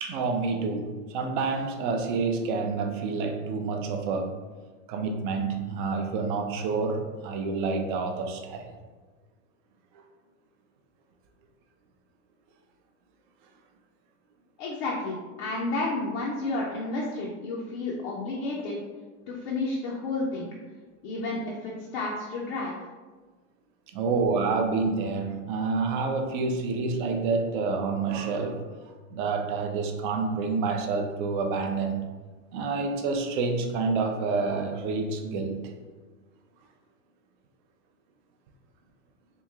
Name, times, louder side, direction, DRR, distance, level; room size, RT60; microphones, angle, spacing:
voice 1, 0.0-4.4 4.9-8.7 23.9-28.6 29.1-32.1 32.5-35.7, right 4 dB, 40° right, 4 dB, 0.4 m, -28 dB
voice 2, 14.6-18.8 19.3-20.5 21.0-22.7, left 2 dB, 35° left, -3 dB, 0.4 m, -31 dB
3.0 x 2.7 x 3.4 m, 1.4 s
supercardioid pair, 150°, 40 cm